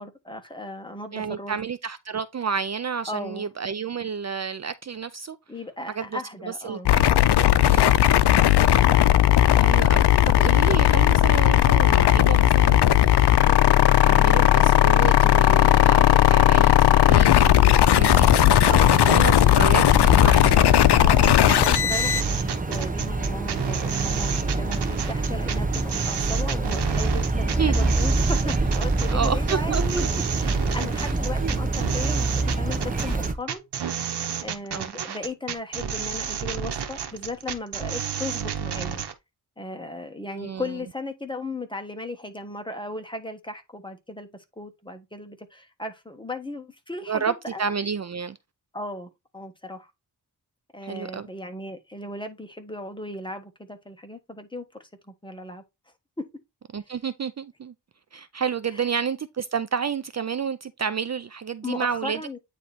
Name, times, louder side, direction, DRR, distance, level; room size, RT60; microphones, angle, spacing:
voice 1, 0.0-1.6 3.1-3.5 5.5-6.9 18.7-19.0 21.0-30.0 30.4-33.6 34.4-39.0 39.6-47.6 48.7-49.9 50.7-55.6 56.2-56.3 58.7-58.9 61.6-62.4, left 2 dB, 10° left, 1.4 m, -36 dB
voice 2, 1.1-5.4 5.9-7.0 7.7-8.0 9.6-18.7 19.1-20.6 27.5-28.0 29.1-30.1 30.9-31.1 31.4-31.5 34.7-34.9 40.3-40.7 47.1-48.4 50.8-51.3 56.7-57.7 58.1-62.2, right 6 dB, 45° right, 0.5 m, -30 dB
sound 1, 6.9-22.2, left 12 dB, 85° left, 0.6 m, -17 dB
sound 2, 17.9-33.3, right 2 dB, 20° right, 1.1 m, -26 dB
sound 3, 21.2-39.1, right 8 dB, 85° right, 1.0 m, -31 dB
9.1 x 3.2 x 4.2 m
wide cardioid pair, 90°, 39 cm